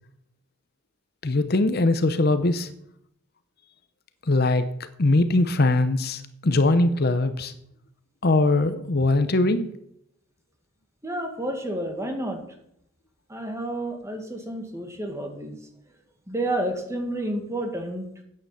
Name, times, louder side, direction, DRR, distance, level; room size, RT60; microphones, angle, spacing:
voice 1, 1.2-2.7 4.3-4.7 5.0-7.5 8.2-9.7, left 2 dB, 50° left, 11 dB, 0.8 m, -21 dB
voice 2, 11.0-12.4 13.3-15.5 16.3-18.1, right 1 dB, 15° right, 4 dB, 1.9 m, -30 dB
10.0 x 8.8 x 7.0 m, 0.75 s
head